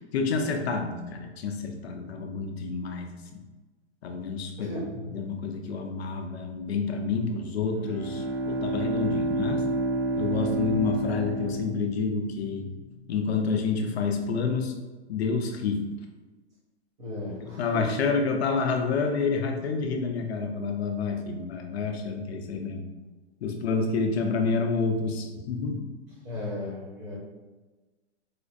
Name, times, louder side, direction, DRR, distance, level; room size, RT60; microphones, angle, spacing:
voice 1, 0.0-3.4 4.0-4.8 5.1-9.6 10.2-12.7 13.1-14.7 15.1-15.9 17.4-22.9 23.4-25.9, left 4 dB, 60° left, 3 dB, 0.5 m, -29 dB
voice 2, 4.6-5.0 17.0-17.9 26.2-27.2, left 1 dB, 15° right, -5 dB, 0.5 m, -36 dB
Bowed string instrument, 7.7-12.4, right 2 dB, 55° right, 1.2 m, -29 dB
4.2 x 2.3 x 2.5 m, 1.2 s
hypercardioid pair, 165°, 36 cm